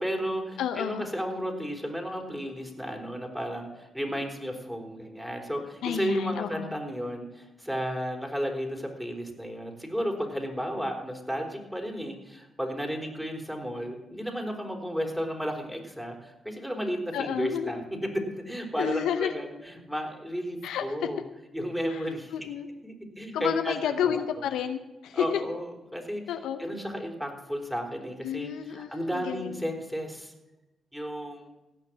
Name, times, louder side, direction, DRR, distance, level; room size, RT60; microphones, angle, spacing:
voice 1, 0.0-21.2 21.5-22.3 22.8-24.2 25.1-25.6 25.9-26.2 26.6-30.3 30.9-31.5, equal, 5° right, 3 dB, 3.6 m, -33 dB
voice 2, 0.6-1.0 5.8-6.7 17.1-17.7 18.8-19.3 20.6-21.1 21.9-22.7 23.3-25.4 26.3-26.6 28.2-29.6, left 9 dB, 80° left, 8 dB, 0.7 m, -30 dB
16.5 x 6.0 x 7.4 m, 1.0 s
hypercardioid pair, 40°, 0 cm